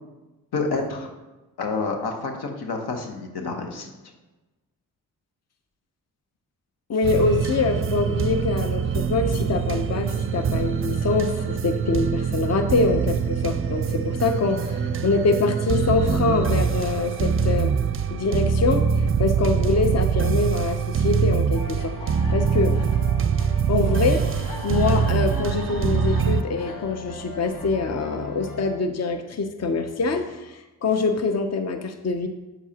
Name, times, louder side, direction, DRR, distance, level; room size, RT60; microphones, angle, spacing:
voice 1, 0.5-1.1 1.6-3.9, left 3 dB, 80° left, 4 dB, 1.0 m, -28 dB
voice 2, 6.9-17.7 18.1-21.9 22.3-22.8 23.7-32.3, left 4 dB, 40° left, 7 dB, 0.8 m, -24 dB
sound 1, 7.0-26.4, right 6 dB, 35° right, 0.5 m, -24 dB
sound 2, 21.5-28.8, left 2 dB, 55° left, 1.3 m, -37 dB
8.1 x 7.1 x 2.9 m, 1.1 s
supercardioid pair, 40°, 39 cm